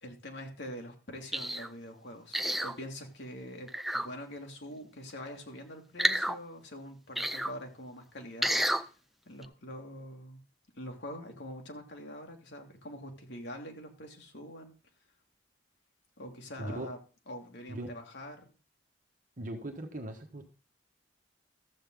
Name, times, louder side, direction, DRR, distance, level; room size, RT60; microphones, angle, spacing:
voice 1, 0.0-8.9 9.3-10.4 10.8-14.7 16.2-17.0 17.3-18.5, equal, 70° left, 3 dB, 2.2 m, -44 dB
sound 1, 1.3-1.7 2.3-2.7 3.7-4.1 6.0-6.4 7.2-7.5 8.4-8.8 9.4-9.5, equal, ahead, 0.5 m, -29 dB
voice 2, 16.6-16.9 17.7-17.9 19.4-20.5, right 1 dB, 45° right, 4 dB, 1.3 m, -39 dB
13.0 x 7.7 x 3.7 m, 0.35 s
head